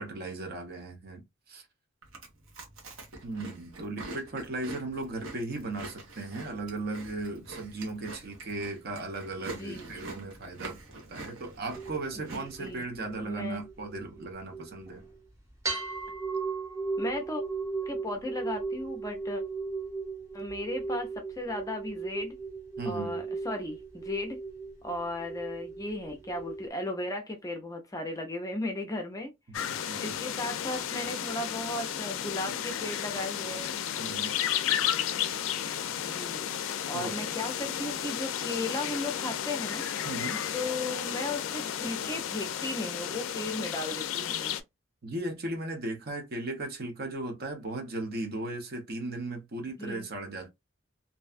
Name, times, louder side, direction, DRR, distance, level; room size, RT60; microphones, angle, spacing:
voice 1, 0.0-1.6 3.2-10.8 11.1-15.0 22.8-23.2 29.5-30.1 34.0-34.4 36.9-37.2 40.0-40.5 45.0-50.5, right 2 dB, 50° right, 0.7 m, -37 dB
Chewing mastication, 2.0-12.8, right 2 dB, 80° right, 1.0 m, -45 dB
voice 2, 9.4-9.9 12.1-12.8 13.2-13.6 17.0-17.4 17.8-19.4 20.3-22.4 22.8-24.4 24.8-29.3 30.0-33.7 36.0-36.5 36.9-39.8 40.5-44.6 49.8-50.1, left 2 dB, 15° left, 0.5 m, -36 dB
sound 1, 11.7-15.1 15.6-26.7, right 4 dB, 15° right, 0.9 m, -37 dB
sound 2, 29.5-44.6, left 9 dB, 80° left, 0.3 m, -33 dB
2.6 x 2.2 x 2.4 m
head